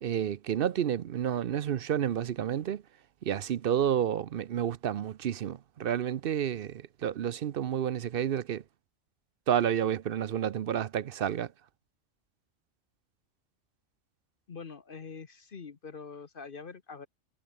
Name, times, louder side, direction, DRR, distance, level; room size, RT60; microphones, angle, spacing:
voice 1, 0.0-2.8 3.2-8.6 9.5-11.5, right 9 dB, 55° right, 0.7 m, -30 dB
voice 2, 14.5-17.1, left 5 dB, 50° left, 1.2 m, -44 dB
omnidirectional pair, 1.3 m